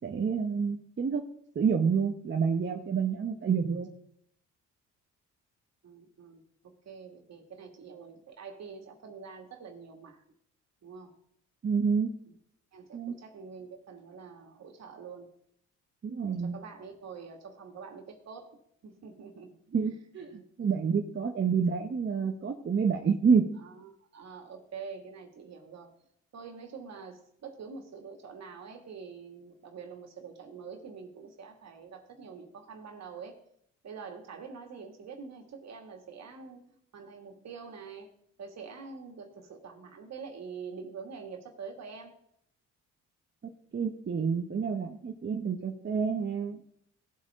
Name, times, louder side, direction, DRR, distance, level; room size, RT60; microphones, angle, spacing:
voice 1, 0.0-1.2 1.5-3.9 11.6-12.1 12.9-13.1 16.0-16.6 19.7-23.4 43.7-46.6, right 6 dB, 40° right, 2 dB, 1.2 m, -28 dB
voice 2, 5.8-10.2 10.8-11.2 12.3-12.4 12.7-15.3 16.3-19.6 20.3-20.5 23.6-25.9 26.3-33.4 33.8-38.1 38.4-42.2, right 5 dB, 60° right, 4 dB, 2.4 m, -46 dB
17.5 x 8.1 x 3.8 m, 0.70 s
cardioid pair, 90°, 30 cm